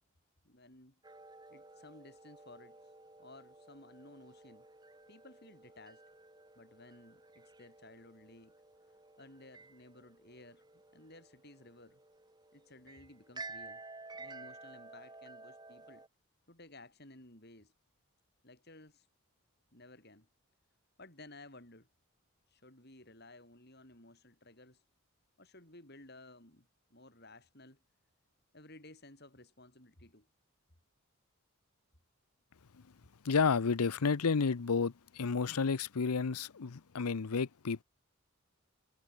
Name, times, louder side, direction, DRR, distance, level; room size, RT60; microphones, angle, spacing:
voice 1, 0.4-1.0 1.5-2.8 3.2-4.7 5.1-6.0 6.6-8.5 9.2-12.0 12.5-13.8 14.2-16.0 16.5-17.7 18.4-19.1 19.7-20.3 21.0-21.9 22.5-24.8 25.4-27.8 28.5-30.3, left 2 dB, 45° left, 5.7 m, -56 dB
sound 1, 1.0-16.1, right 3 dB, 20° right, 1.8 m, -53 dB
voice 2, 33.2-37.8, left 5 dB, 90° left, 0.7 m, -31 dB
head